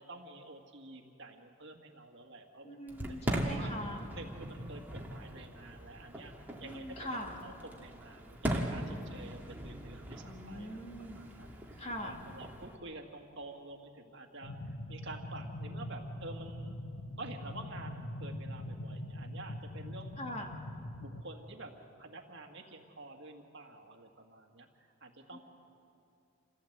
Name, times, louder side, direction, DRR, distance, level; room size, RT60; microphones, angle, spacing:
voice 1, 0.0-2.8 3.2-3.7 4.1-10.8 11.1-16.8 17.2-20.4 21.0-21.7 22.0-25.4, right 2 dB, 55° right, 2 dB, 2.0 m, -49 dB
voice 2, 2.6-4.1 6.6-7.4 10.2-11.3 11.8-12.2 20.2-20.6 25.3-25.4, equal, 30° left, 1 dB, 2.4 m, -42 dB
Fireworks, 2.9-12.8, equal, 10° right, 1.8 m, -40 dB
active drone (bass), 14.4-21.2, left 1 dB, 65° left, 1.1 m, -43 dB
27.5 x 16.0 x 8.0 m, 2.6 s
head